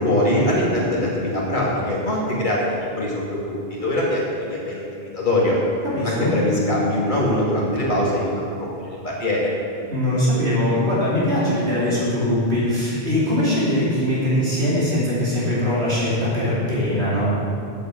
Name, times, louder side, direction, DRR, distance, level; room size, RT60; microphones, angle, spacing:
voice 1, 0.0-5.6 6.0-9.5, left 1 dB, 50° left, -5 dB, 2.6 m, -22 dB
voice 2, 5.9-6.3 9.9-17.3, left 1 dB, 85° right, -8 dB, 3.3 m, -21 dB
8.4 x 7.4 x 7.7 m, 2.4 s
omnidirectional pair, 1.1 m